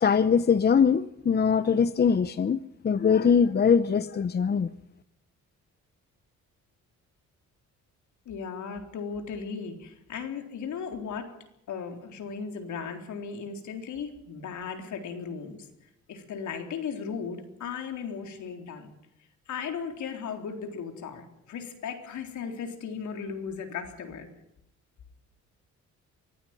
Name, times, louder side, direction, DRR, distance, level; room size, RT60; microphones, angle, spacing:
voice 1, 0.0-2.6 2.8-4.7, left 6 dB, 35° left, 14 dB, 0.8 m, -22 dB
voice 2, 8.3-11.4 11.7-15.7 16.1-18.9 19.5-24.3, left 6 dB, 70° left, 5 dB, 4.0 m, -36 dB
24.0 x 15.5 x 9.1 m, 0.79 s
cardioid pair, 90°, 30 cm